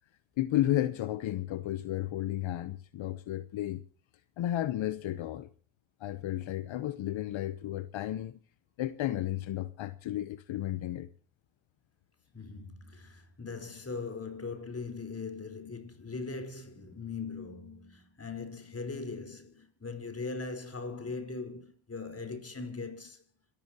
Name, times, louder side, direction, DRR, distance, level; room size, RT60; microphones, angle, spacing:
voice 1, 0.4-3.8 4.4-5.5 6.0-8.4 8.8-11.1, left 13 dB, 75° left, 1.0 m, -33 dB
voice 2, 12.3-23.2, left 4 dB, 30° left, 4.6 m, -40 dB
27.0 x 14.5 x 2.9 m
cardioid pair, 85°, 46 cm